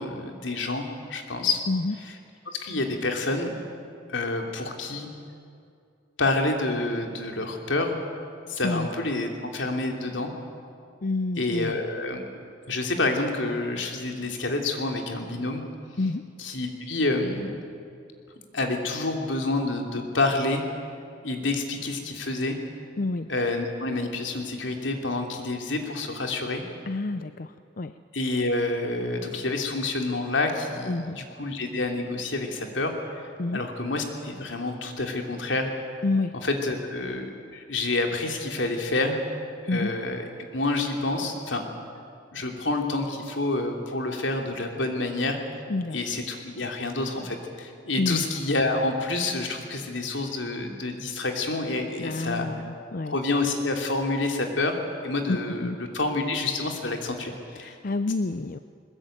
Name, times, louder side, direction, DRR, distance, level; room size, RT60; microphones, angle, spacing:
voice 1, 0.0-1.6 2.5-3.6 4.1-5.1 6.2-8.0 8.5-10.3 11.4-12.2 12.7-15.6 16.4-17.6 18.5-20.6 21.2-22.6 23.3-26.6 28.1-32.9 33.5-35.7 36.4-39.2 39.7-40.2 40.5-41.6 42.3-45.4 45.9-52.5 53.1-57.7, left 2 dB, 85° left, 3 dB, 3.0 m, -28 dB
voice 2, 11.0-11.8 16.0-16.2 23.0-23.3 26.9-27.9 30.9-31.2 33.4-33.6 36.0-36.4 39.7-39.9 45.7-46.0 48.0-48.2 52.0-53.2 55.3-55.8 57.6-58.6, left 2 dB, 50° left, 11 dB, 0.5 m, -28 dB
21.0 x 21.0 x 9.1 m, 2.4 s
head